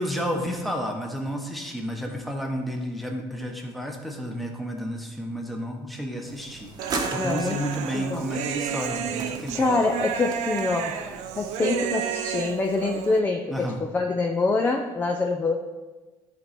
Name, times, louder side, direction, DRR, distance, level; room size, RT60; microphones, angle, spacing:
voice 1, 0.0-6.7 7.1-9.8 13.5-13.8, equal, ahead, 1 dB, 1.2 m, -31 dB
sound 1, 6.2-11.9, right 3 dB, 35° right, 1.1 m, -38 dB
Human voice, 6.8-13.2, right 8 dB, 75° right, 0.7 m, -31 dB
voice 2, 7.2-7.7 7.9-8.3 9.5-15.5, left 3 dB, 15° left, 3 dB, 0.6 m, -25 dB
13.5 x 4.6 x 4.3 m, 1.2 s
cardioid pair, 145°, 12 cm